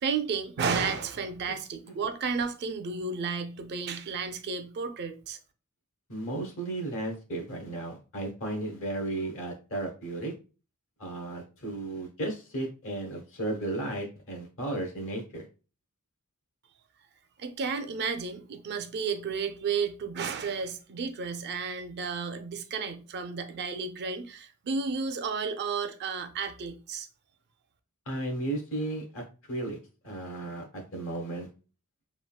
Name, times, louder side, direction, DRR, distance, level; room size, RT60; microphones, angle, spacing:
voice 1, 0.0-5.4 17.4-27.1, right 5 dB, 50° right, 0.4 m, -32 dB
voice 2, 6.1-10.3 11.0-15.5 28.1-29.8 30.0-31.5, right 2 dB, 65° left, 0.9 m, -34 dB
3.5 x 2.3 x 2.3 m
head